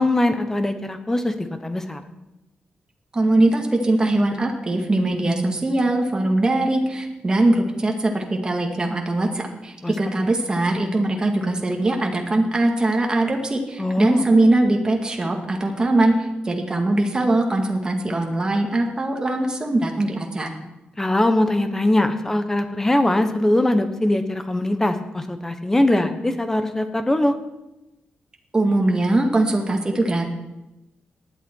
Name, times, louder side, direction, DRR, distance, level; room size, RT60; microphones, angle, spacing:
voice 1, 0.0-2.0 9.8-9.9 13.8-14.2 21.0-27.3, left 1 dB, 10° left, 8 dB, 1.2 m, -21 dB
voice 2, 3.1-16.2 16.4-20.6 28.5-30.3, right 2 dB, 20° right, 2 dB, 2.0 m, -21 dB
18.5 x 11.5 x 4.6 m, 0.98 s
wide cardioid pair, 160°, 4 cm